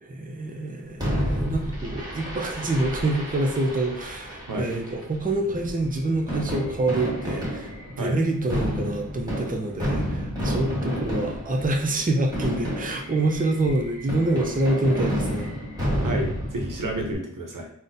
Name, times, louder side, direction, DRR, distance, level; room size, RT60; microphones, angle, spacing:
voice 1, 0.0-15.5, right 2 dB, 25° right, 1 dB, 0.5 m, -26 dB
Fireworks, 1.0-17.1, equal, 10° right, 1.2 m, -30 dB
voice 2, 16.0-17.7, right 1 dB, 85° right, 2 dB, 0.6 m, -30 dB
3.8 x 2.1 x 2.6 m, 0.65 s
wide cardioid pair, 40°, 31 cm